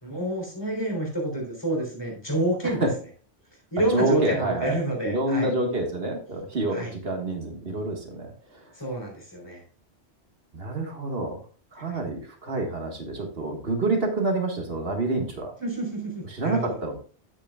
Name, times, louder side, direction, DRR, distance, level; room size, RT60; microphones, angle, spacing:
voice 1, 0.0-2.8 3.7-5.5 6.7-6.9 8.7-9.6 11.9-12.0 15.6-16.8, right 1 dB, 20° left, 0 dB, 3.4 m, -28 dB
voice 2, 3.9-4.8 5.1-8.6 10.5-11.4 11.7-15.5 16.3-17.0, right 2 dB, 55° right, 2 dB, 1.8 m, -27 dB
10.0 x 8.5 x 2.3 m, 0.41 s
omnidirectional pair, 1.2 m